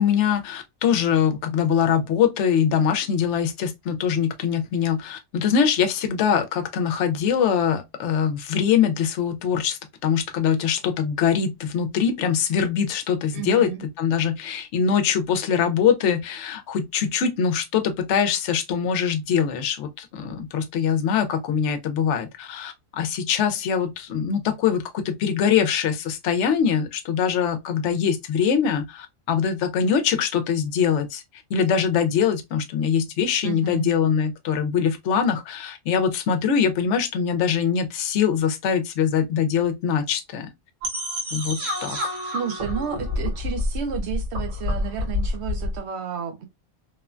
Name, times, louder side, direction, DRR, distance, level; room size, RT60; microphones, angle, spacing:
voice 1, 0.0-13.7 14.0-31.2 31.5-40.5 41.3-42.2, left 7 dB, 75° left, 0.9 m, -23 dB
voice 2, 13.3-13.8 33.4-33.9 42.0-46.5, right 8 dB, 65° right, 0.9 m, -31 dB
sound 1, 40.8-45.8, left 2 dB, 80° right, 1.4 m, -28 dB
3.0 x 2.2 x 2.4 m
omnidirectional pair, 1.3 m